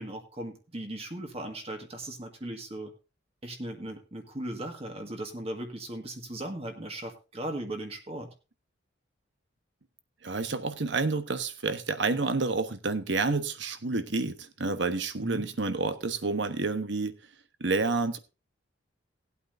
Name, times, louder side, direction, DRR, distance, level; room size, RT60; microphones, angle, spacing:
voice 1, 0.0-2.9 3.4-8.3 15.2-15.5, right 1 dB, 30° right, 1.8 m, -37 dB
voice 2, 10.2-17.2 17.6-18.2, right 3 dB, 65° right, 1.1 m, -29 dB
18.0 x 8.4 x 2.7 m
head